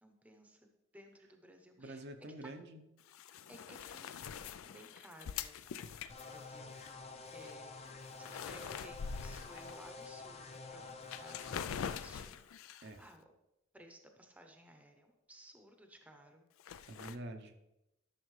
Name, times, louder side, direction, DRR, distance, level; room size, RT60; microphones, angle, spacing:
voice 1, 0.0-2.0 2.4-2.5 3.5-6.9 7.2-12.4 13.0-13.3 13.7-16.5, right 1 dB, 5° right, 4 dB, 0.7 m, -58 dB
voice 2, 1.8-2.8 12.8-13.0 16.9-17.6, right 1 dB, 55° right, 5 dB, 0.7 m, -47 dB
sound 1, 3.0-6.9 7.4-7.5 7.9-10.0 10.5-10.6 11.0-12.9 16.6-17.2, left 7 dB, 85° left, 0.4 m, -44 dB
sound 2, 6.1-11.6, left 3 dB, 30° left, 0.6 m, -49 dB
12.5 x 6.3 x 3.2 m, 0.91 s
head